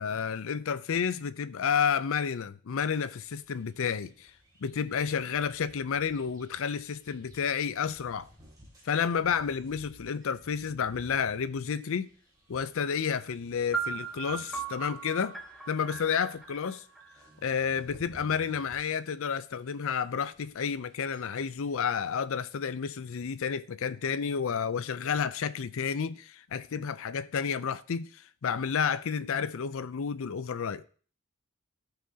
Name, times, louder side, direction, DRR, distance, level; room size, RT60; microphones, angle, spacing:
voice 1, 0.0-4.3 4.6-8.3 8.8-12.1 12.5-15.4 15.7-16.8 17.4-30.8, left 6 dB, 65° left, 0.5 m, -31 dB
sound 1, 2.9-22.2, equal, 20° right, 2.6 m, -58 dB
sound 2, 13.7-17.6, right 6 dB, ahead, 1.0 m, -38 dB
14.0 x 5.7 x 2.8 m
head